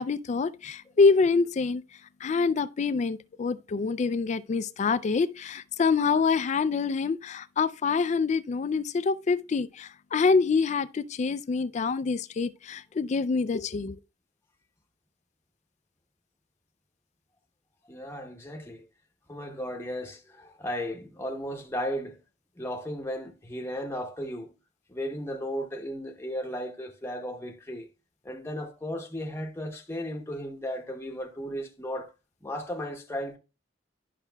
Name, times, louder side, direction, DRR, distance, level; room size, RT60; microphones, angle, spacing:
voice 1, 0.0-1.8 2.2-14.0, left 4 dB, 40° left, 0.3 m, -26 dB
voice 2, 17.9-18.9 19.3-22.2 22.6-24.5 24.9-27.9 28.2-32.1 32.4-33.4, equal, 15° left, 0.8 m, -35 dB
11.0 x 5.8 x 2.2 m
head